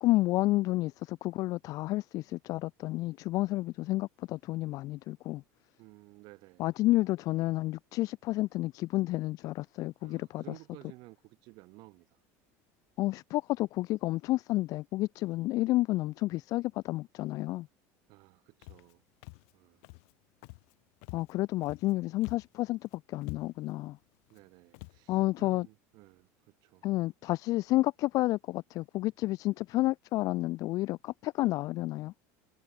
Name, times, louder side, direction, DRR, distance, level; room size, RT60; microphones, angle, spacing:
voice 1, 0.0-5.4 6.6-10.6 13.0-17.7 21.1-24.0 25.1-25.7 26.8-32.1, left 18 dB, 50° left, 0.5 m, -30 dB
voice 2, 5.8-6.6 10.0-12.1 18.1-19.0 19.5-19.8 24.3-26.3 26.6-26.8, right 24 dB, 60° right, 5.4 m, -54 dB
Walk footsteps, 18.6-18.9 19.2-19.5 19.8-20.1 20.4-20.7 21.0-21.9 22.2-22.6 22.9-23.0 23.2-23.7 24.3-24.4 24.7-25.0, left 34 dB, 70° left, 1.6 m, -47 dB
cardioid pair, 145°, 8 cm